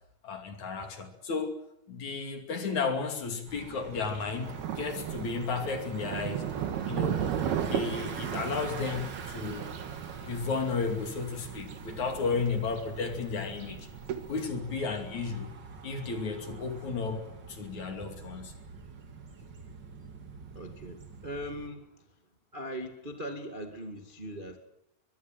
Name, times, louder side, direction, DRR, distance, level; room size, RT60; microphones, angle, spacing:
voice 1, 0.2-1.6 1.9-6.4 6.9-7.3 7.7-9.7 10.2-13.9 14.3-15.5 15.8-18.5, left 4 dB, 50° left, 5 dB, 3.7 m, -33 dB
Bicycle, 3.5-21.7, right 5 dB, 40° right, 1.8 m, -45 dB
Thunder, 4.4-14.4, right 9 dB, 75° right, 3.6 m, -36 dB
voice 2, 20.5-22.1 22.5-24.6, equal, 20° right, 4 dB, 1.5 m, -40 dB
23.0 x 22.5 x 7.7 m, 0.81 s
omnidirectional pair, 4.6 m